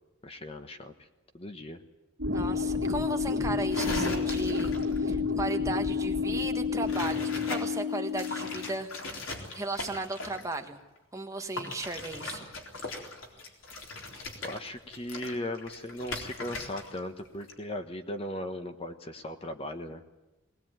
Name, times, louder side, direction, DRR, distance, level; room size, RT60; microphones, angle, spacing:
voice 1, 0.2-1.1 1.3-1.8 14.4-20.0, left 1 dB, 30° left, 7 dB, 1.3 m, -38 dB
sound 1, 2.2-8.8, left 5 dB, 60° right, 2.2 m, -30 dB
voice 2, 2.3-7.2 7.5-9.1 9.5-10.8 11.1-12.5, right 2 dB, 15° right, 5 dB, 1.6 m, -35 dB
sound 2, 3.7-5.0 6.9-7.6 8.1-10.6 11.6-17.0 17.2-17.5, left 2 dB, 80° left, 4.1 m, -38 dB
21.0 x 19.5 x 9.2 m, 1.0 s
head